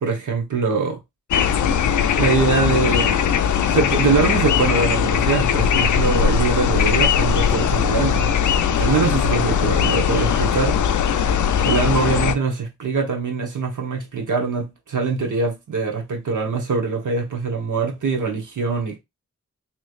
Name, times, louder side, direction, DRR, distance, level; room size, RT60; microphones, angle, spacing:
voice 1, 0.0-1.0 2.2-3.2 3.7-8.3 8.8-10.8 11.6-19.0, right 4 dB, 85° right, 1.1 m, -23 dB
sound 1, 1.3-12.4, left 8 dB, 75° left, 0.4 m, -19 dB
3.2 x 3.1 x 2.4 m
cardioid pair, 45°, 30 cm